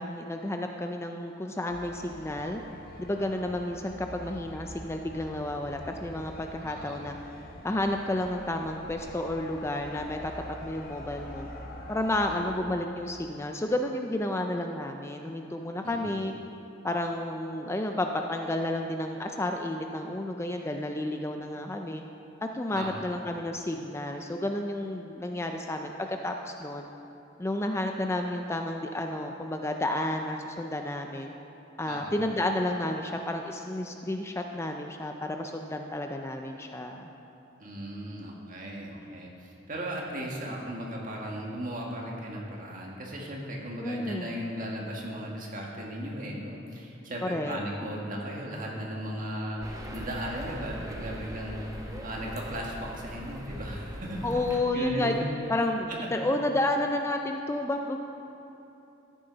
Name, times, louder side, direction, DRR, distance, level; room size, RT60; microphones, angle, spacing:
voice 1, 0.0-2.6 3.0-7.2 7.6-10.3 10.6-11.5 11.9-16.3 16.8-22.0 22.4-26.9 27.4-31.3 31.8-37.1 43.8-44.4 47.2-47.6 54.2-55.2 55.5-58.0, left 1 dB, 15° left, 4 dB, 0.4 m, -31 dB
sound 1, 1.7-12.4, left 1 dB, 50° left, 1.2 m, -45 dB
voice 2, 6.6-7.1 12.3-12.5 15.8-16.2 22.7-23.1 31.8-32.2 37.6-54.2 54.5-55.1 55.9-56.0, equal, 45° right, -2 dB, 1.8 m, -37 dB
sound 2, 49.6-54.6, equal, 20° right, 1.0 m, -40 dB
13.5 x 10.0 x 4.0 m, 3.0 s
head